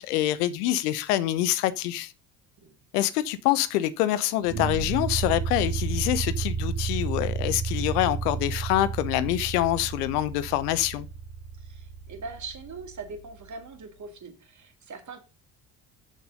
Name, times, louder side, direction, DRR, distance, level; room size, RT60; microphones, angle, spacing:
voice 1, 0.0-2.1 2.9-11.1, left 14 dB, 70° left, 0.8 m, -26 dB
sound 1, 4.4-13.4, right 5 dB, 70° right, 2.0 m, -32 dB
voice 2, 11.6-15.2, right 4 dB, 35° right, 2.0 m, -41 dB
6.7 x 6.1 x 5.1 m
figure-of-eight pair, 55°, 49 cm